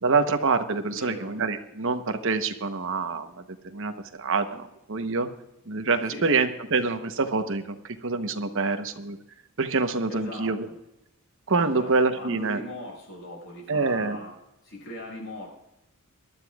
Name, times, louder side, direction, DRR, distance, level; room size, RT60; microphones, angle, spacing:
voice 1, 0.0-3.3 3.6-5.3 5.7-9.2 9.6-10.7 11.5-12.6 13.7-14.2, right 4 dB, 60° right, 8 dB, 1.0 m, -26 dB
voice 2, 0.9-1.3 6.1-6.3 10.1-10.7 11.6-14.3 14.6-15.5, left 1 dB, 60° left, -1 dB, 6.2 m, -39 dB
23.0 x 12.0 x 2.4 m, 0.87 s
head